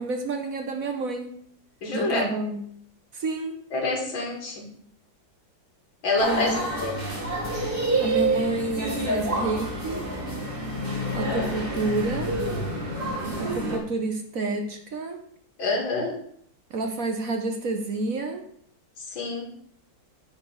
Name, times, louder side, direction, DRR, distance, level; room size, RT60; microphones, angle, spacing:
voice 1, 0.0-1.3 1.9-2.6 3.1-3.6 6.2-6.7 8.0-10.1 11.1-12.4 13.4-15.2 16.7-18.5, right 3 dB, 50° right, 5 dB, 1.2 m, -29 dB
voice 2, 1.8-2.3 3.7-4.6 6.0-7.0 15.6-16.2 19.0-19.4, left 3 dB, 85° left, 0 dB, 3.0 m, -27 dB
sound 1, 6.2-13.8, right 1 dB, 25° right, 2.5 m, -28 dB
9.0 x 4.4 x 7.1 m, 0.65 s
omnidirectional pair, 2.1 m